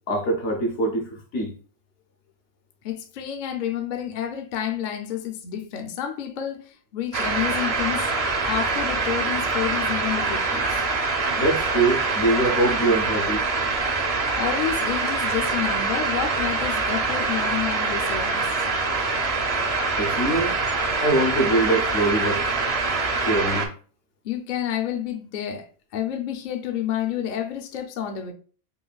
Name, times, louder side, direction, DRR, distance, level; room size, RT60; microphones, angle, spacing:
voice 1, 0.1-1.5 11.4-13.4 20.0-20.6 21.0-22.4 23.2-23.7, right 2 dB, 85° left, 1.3 m, -23 dB
voice 2, 2.8-10.8 14.4-18.5 24.2-28.3, left 10 dB, 55° left, 0.6 m, -30 dB
sound 1, 7.1-23.7, right 3 dB, 45° right, 0.5 m, -24 dB
5.5 x 2.5 x 2.3 m
omnidirectional pair, 1.2 m